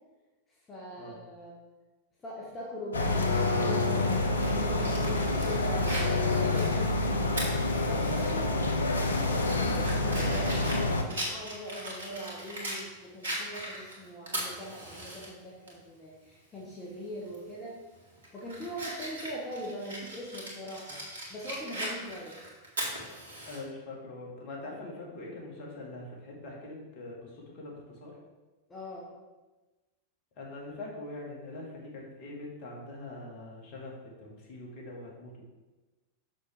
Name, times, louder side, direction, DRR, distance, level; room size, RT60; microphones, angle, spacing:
voice 1, 0.7-1.6 2.2-7.1 7.9-17.8 18.3-21.0 21.3-22.4 28.7-29.1, equal, 20° left, -4 dB, 1.4 m, -41 dB
sound 1, 2.9-11.0, left 2 dB, 75° left, 0.7 m, -27 dB
Fire, 4.4-8.3 8.7-8.8 9.3-12.8 13.2-15.3 15.7-15.8 17.3-17.5 18.0-23.6, right 1 dB, 70° right, 1.9 m, -39 dB
voice 2, 23.4-28.1 30.4-33.9 34.2-35.4, left 2 dB, 45° left, -2 dB, 2.0 m, -43 dB
6.5 x 6.3 x 3.5 m, 1.2 s
figure-of-eight pair, 90°, 0 cm